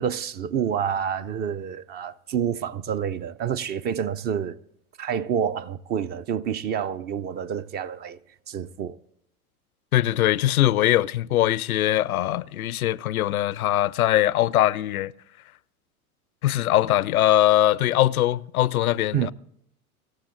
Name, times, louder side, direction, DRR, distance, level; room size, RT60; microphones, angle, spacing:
voice 1, 0.0-4.6 5.0-8.2 8.5-9.0 19.1-19.3, right 8 dB, 25° right, 0.4 m, -28 dB
voice 2, 9.9-15.1 16.4-19.3, left 14 dB, 75° left, 0.5 m, -21 dB
25.5 x 14.0 x 2.5 m
figure-of-eight pair, 85°, 44 cm